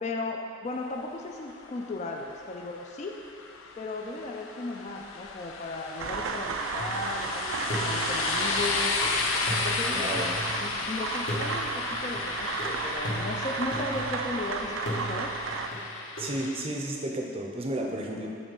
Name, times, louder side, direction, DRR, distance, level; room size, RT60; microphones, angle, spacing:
voice 1, 0.0-3.1 3.8-7.6 7.8-9.0 9.6-10.1 10.6-15.3, left 2 dB, 35° left, 2 dB, 0.3 m, -36 dB
sound 1, 1.6-16.6, left 4 dB, 90° left, 0.5 m, -33 dB
sound 2, 6.0-15.7, right 4 dB, 90° right, 0.4 m, -34 dB
sound 3, 6.8-7.3 7.7-10.9 11.3-14.4 14.9-16.3, equal, 65° left, 1.2 m, -37 dB
voice 2, 9.9-10.3 16.2-18.3, right 1 dB, 30° right, 0 dB, 0.5 m, -32 dB
6.9 x 3.2 x 5.3 m, 2.4 s
head